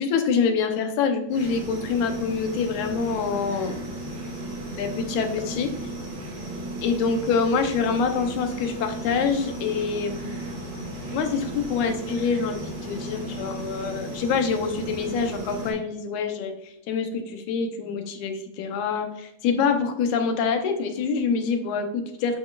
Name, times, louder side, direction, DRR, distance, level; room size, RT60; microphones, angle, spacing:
voice 1, 0.0-3.8 4.8-5.7 6.8-10.4 11.1-22.4, left 5 dB, 85° left, 6 dB, 2.3 m, -26 dB
sound 1, 1.3-15.7, right 1 dB, 50° right, 2.9 m, -35 dB
9.5 x 5.1 x 2.4 m, 0.82 s
omnidirectional pair, 3.4 m